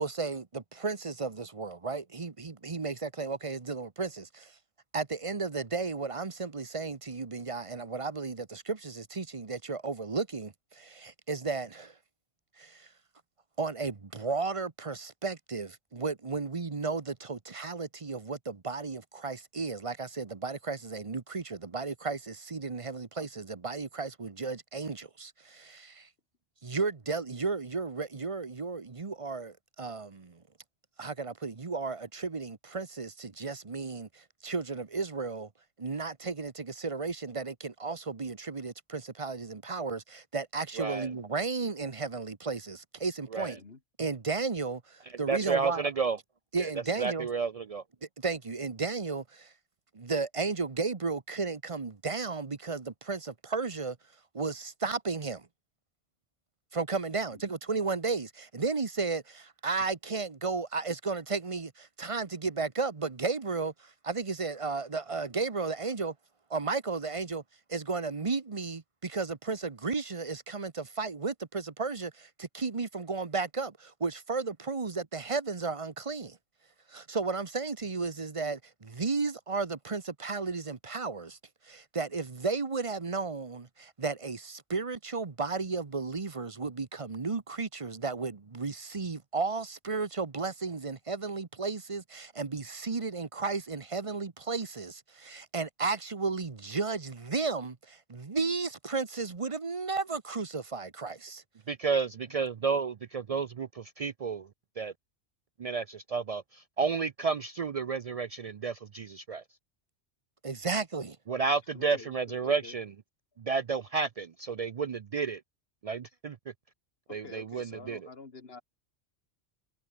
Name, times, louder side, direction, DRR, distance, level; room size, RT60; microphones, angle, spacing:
voice 1, 0.0-4.5 4.9-11.9 12.6-12.9 13.6-26.1 26.6-30.4 31.0-35.5 35.8-43.6 44.0-45.9 46.5-47.3 48.2-49.5 49.9-54.0 54.3-55.5 56.7-66.1 66.5-67.4 67.7-76.4 76.9-81.4 81.6-101.4 110.4-111.2, right 4 dB, 30° right, 1.0 m, -34 dB
voice 2, 40.8-41.1 43.3-43.5 45.3-46.2 46.6-46.7 47.0-47.8 101.7-104.5 104.8-104.9 105.6-109.4 111.3-112.9 113.4-115.4 115.8-116.4 117.1-118.0, right 5 dB, 60° right, 0.4 m, -31 dB
voice 3, 43.4-43.8 57.1-57.5 111.7-112.8 117.1-118.6, left 4 dB, 60° left, 2.2 m, -49 dB
omnidirectional pair, 1.2 m